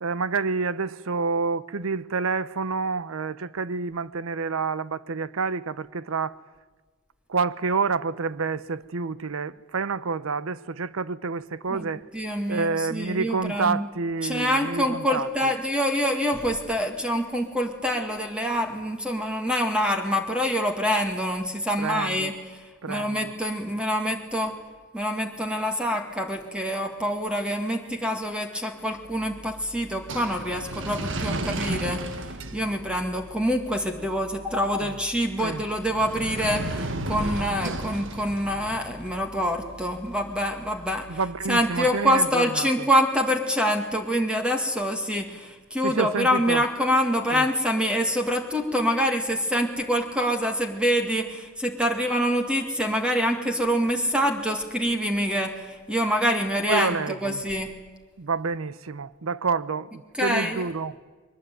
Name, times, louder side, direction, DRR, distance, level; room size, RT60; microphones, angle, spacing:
voice 1, 0.0-6.4 7.3-12.0 12.5-15.3 21.8-22.3 22.8-23.3 34.8-35.0 35.4-35.6 41.1-42.9 45.8-46.6 47.3-47.5 56.7-57.4 58.2-61.0, right 4 dB, 80° right, 0.7 m, -28 dB
voice 2, 12.1-13.9 14.2-24.5 24.9-32.0 32.5-57.7 60.1-60.7, equal, 5° right, 2.1 m, -26 dB
sound 1, 29.0-42.1, right 2 dB, 60° right, 1.5 m, -35 dB
22.5 x 19.5 x 9.3 m
head